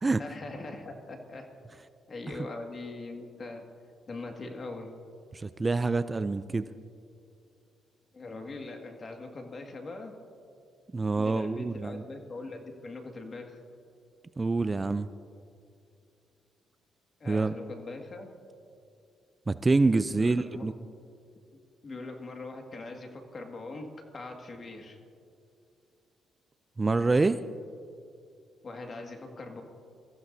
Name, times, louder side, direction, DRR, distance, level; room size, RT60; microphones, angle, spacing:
voice 1, 0.2-1.5 2.1-3.7 4.1-4.9 8.1-10.2 11.2-13.6 17.2-18.3 20.2-20.7 21.8-25.0 28.6-29.6, left 3 dB, 40° left, 3 dB, 1.9 m, -41 dB
voice 2, 5.3-6.6 10.9-12.0 14.4-15.1 17.3-17.6 19.5-20.7 26.8-27.4, right 3 dB, 25° right, 13 dB, 0.4 m, -26 dB
24.0 x 14.5 x 2.7 m, 2.5 s
cardioid pair, 90°, 0 cm